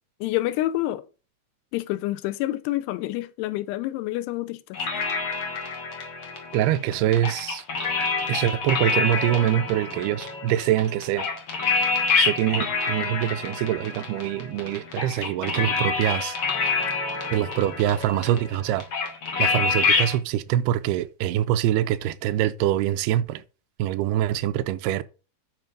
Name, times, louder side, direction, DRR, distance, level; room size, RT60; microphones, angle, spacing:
voice 1, 0.2-1.1 1.7-5.1, left 16 dB, 85° left, 2.7 m, -28 dB
sound 1, 4.7-20.2, left 4 dB, 45° left, 1.6 m, -27 dB
voice 2, 6.5-7.6 8.3-11.3 12.2-16.4 17.3-18.9 19.4-23.4 23.8-25.0, right 12 dB, 85° right, 2.5 m, -24 dB
9.4 x 4.4 x 5.3 m
omnidirectional pair, 4.7 m